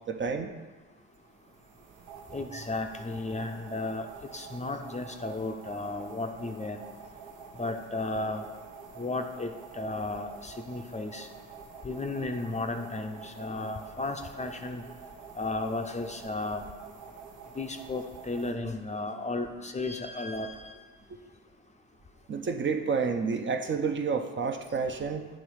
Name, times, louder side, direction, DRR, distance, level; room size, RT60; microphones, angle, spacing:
voice 1, 0.1-0.5 22.3-25.3, right 5 dB, 40° right, 6 dB, 0.6 m, -29 dB
sound 1, 1.1-18.5, right 5 dB, 75° right, 0.8 m, -47 dB
voice 2, 2.3-4.1 4.3-6.8 7.6-8.5 9.0-11.3 11.8-14.8 15.3-16.7 17.6-20.8, left 2 dB, 20° left, 5 dB, 0.6 m, -34 dB
8.6 x 3.1 x 4.8 m, 1.3 s
supercardioid pair, 65°, 31 cm